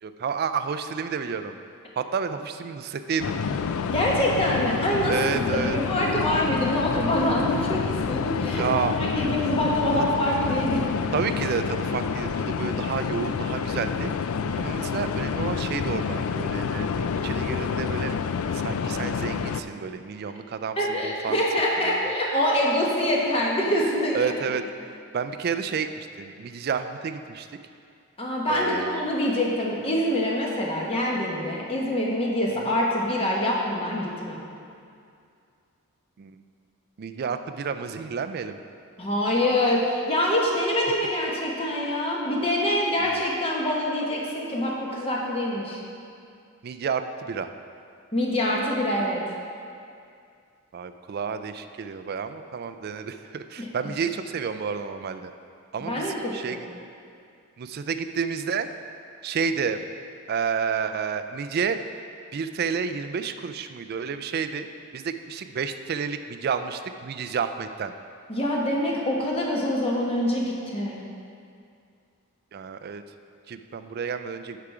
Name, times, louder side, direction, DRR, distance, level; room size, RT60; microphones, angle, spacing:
voice 1, 0.0-1.6 2.0-3.4 5.1-5.8 8.5-8.9 10.0-10.1 11.1-14.1 14.6-16.9 17.2-18.2 18.5-21.4 21.8-22.1 24.1-27.5 28.5-29.1 32.5-32.8 36.2-36.4 37.0-38.6 43.0-43.2 46.6-47.5 50.7-55.3 55.7-56.7 57.6-58.7 59.2-59.8 60.3-61.8 62.3-64.7 64.9-67.9 72.5-73.0 73.5-74.6, right 6 dB, 45° right, 9 dB, 0.3 m, -30 dB
sound 1, 3.2-19.6, left 6 dB, 70° left, 0.3 m, -28 dB
voice 2, 3.9-5.6 5.9-11.0 20.8-24.3 28.2-34.4 39.0-45.8 48.1-49.2 53.6-53.7 55.9-56.6 68.3-71.0, left 1 dB, 25° left, -3 dB, 1.1 m, -25 dB
8.5 x 5.7 x 4.8 m, 2.4 s
head